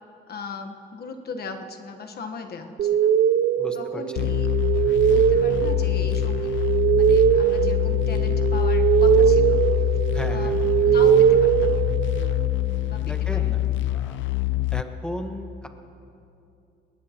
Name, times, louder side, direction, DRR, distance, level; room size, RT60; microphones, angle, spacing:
voice 1, 0.3-3.1 3.7-4.5 5.0-6.5 6.9-9.6 10.3-10.5 10.8-11.8 12.9-13.5, left 4 dB, 50° left, 4 dB, 1.2 m, -38 dB
sound 1, 2.8-12.5, right 9 dB, 55° right, 0.4 m, -21 dB
voice 2, 3.6-4.3 10.1-10.6 13.0-13.7 13.9-14.2 14.7-15.7, left 1 dB, 5° left, 5 dB, 1.3 m, -35 dB
sound 2, 4.2-14.8, left 14 dB, 75° left, 0.5 m, -25 dB
21.0 x 18.0 x 2.9 m, 2.7 s
cardioid pair, 90°, 20 cm